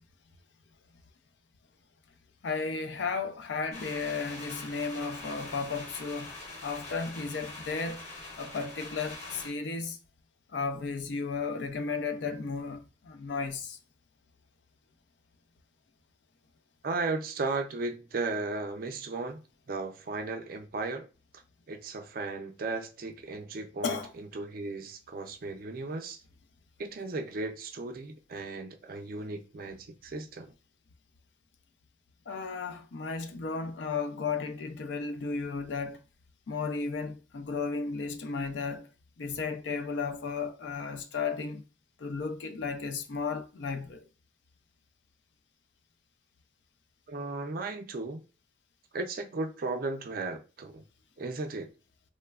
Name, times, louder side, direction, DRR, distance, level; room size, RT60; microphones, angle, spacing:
voice 1, 2.4-6.3 6.6-8.0 8.4-10.0 10.5-13.8 23.8-24.1 32.3-36.0 36.5-38.9 39.2-41.6 42.0-44.1, left 4 dB, 70° left, 0.4 m, -34 dB
sound 1, 3.7-9.5, left 2 dB, 40° left, 1.0 m, -44 dB
voice 2, 16.8-19.4 19.7-21.1 21.7-26.2 26.8-30.5 47.1-48.2 48.9-50.8 51.2-51.7, right 3 dB, 50° right, 0.4 m, -35 dB
3.1 x 2.0 x 2.3 m
head